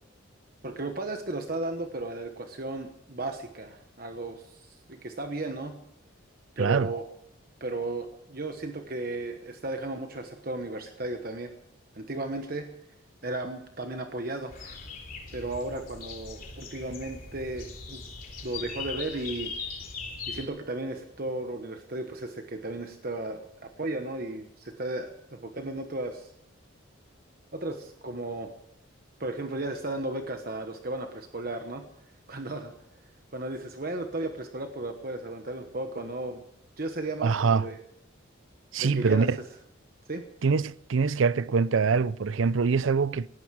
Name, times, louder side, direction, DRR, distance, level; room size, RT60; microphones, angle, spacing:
voice 1, 0.6-5.8 6.6-7.0 7.6-11.5 11.9-12.7 13.2-14.8 15.3-18.0 18.4-19.5 20.3-26.3 27.5-28.5 29.2-31.8 32.3-32.7 33.3-36.4 36.8-37.8 38.8-39.3 40.1-40.3, right 2 dB, 45° right, 1.2 m, -35 dB
voice 2, 6.6-6.9 37.2-37.7 38.7-39.4 40.4-43.3, right 5 dB, 75° right, 0.5 m, -24 dB
sound 1, 14.5-20.5, left 5 dB, 45° left, 3.6 m, -40 dB
19.0 x 15.5 x 4.8 m
head